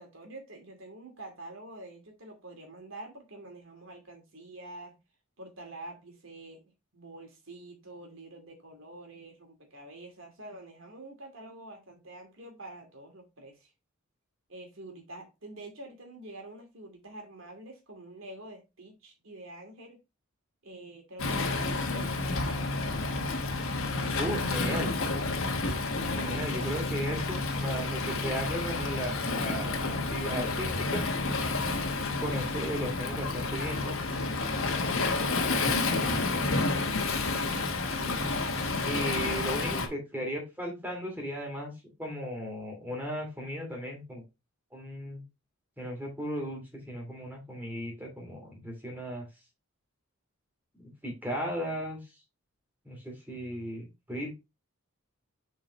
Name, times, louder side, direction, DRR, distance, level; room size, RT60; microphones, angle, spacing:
voice 1, 0.0-4.9 5.4-13.7 14.5-20.0 20.6-23.4 36.0-36.5 37.3-39.1, right 1 dB, 65° right, 2.3 m, -47 dB
Waves surf, 21.2-39.9, left 3 dB, 70° left, 1.4 m, -30 dB
voice 2, 24.2-24.9 26.1-31.0 32.2-34.0 38.8-41.7 42.0-44.2 44.7-45.2 45.8-49.3 50.7-52.0 52.8-54.3, equal, 10° right, 2.9 m, -36 dB
7.4 x 4.6 x 3.1 m
head